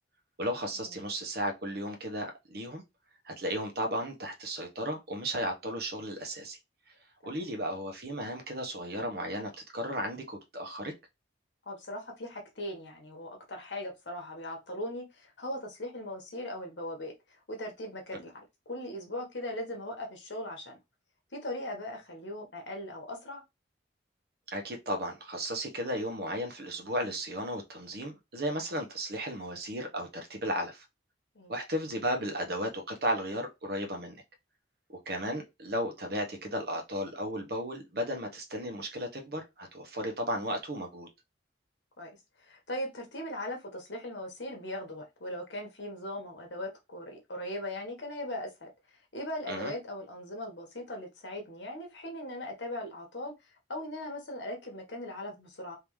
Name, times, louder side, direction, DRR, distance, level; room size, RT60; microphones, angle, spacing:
voice 1, 0.4-2.8 3.2-6.6 7.2-10.9 24.5-30.8 31.5-34.2 34.9-41.1 49.5-49.7, equal, 55° right, 1.0 m, -34 dB
voice 2, 11.6-20.8 21.3-23.4 31.3-31.5 42.0-48.7 49.1-55.8, left 1 dB, 80° left, 1.4 m, -39 dB
3.5 x 2.9 x 3.1 m
head